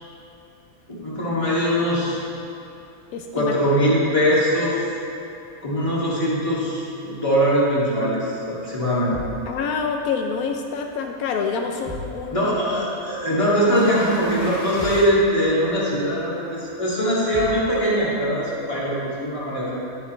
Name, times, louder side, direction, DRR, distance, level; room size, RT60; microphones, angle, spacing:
voice 1, 1.0-2.2 3.3-4.8 5.6-9.2 12.3-19.7, equal, 25° left, -8 dB, 2.3 m, -21 dB
voice 2, 3.1-3.6 4.3-4.4 9.5-12.5, left 5 dB, 85° left, 3 dB, 1.1 m, -27 dB
sound 1, 9.1-9.5 11.9-12.2 14.8-15.2 17.3-17.7, left 2 dB, 20° right, 1.6 m, -34 dB
sound 2, 10.2-10.5 11.9-15.9, equal, 50° left, 2.5 m, -38 dB
11.0 x 9.3 x 3.1 m, 2.8 s
omnidirectional pair, 1.5 m